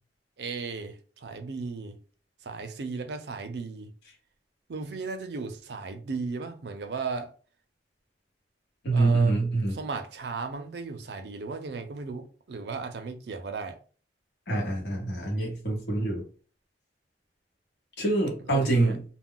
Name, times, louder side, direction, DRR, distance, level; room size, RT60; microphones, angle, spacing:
voice 1, 0.4-2.0 2.4-3.9 4.7-7.3 8.9-9.4 9.7-13.8 18.5-18.9, right 4 dB, 70° right, 0.5 m, -35 dB
voice 2, 8.8-9.8 14.5-16.3 18.0-19.0, right 2 dB, 75° left, 1.1 m, -25 dB
2.2 x 2.1 x 3.6 m
head